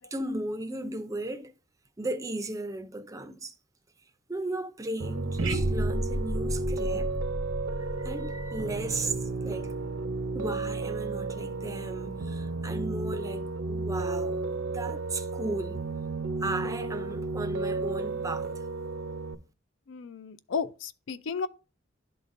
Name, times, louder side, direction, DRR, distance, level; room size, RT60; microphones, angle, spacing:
voice 1, 0.1-1.5 2.0-3.5 4.3-7.1 7.8-9.7 10.3-15.8 16.4-18.6, right 2 dB, 15° right, 0.4 m, -36 dB
Piano, 5.0-19.3, right 3 dB, 65° right, 0.5 m, -33 dB
sound 1, 5.4-9.5, right 1 dB, 85° right, 0.9 m, -33 dB
voice 2, 19.9-21.5, left 5 dB, 70° left, 0.4 m, -33 dB
11.5 x 3.9 x 2.5 m
head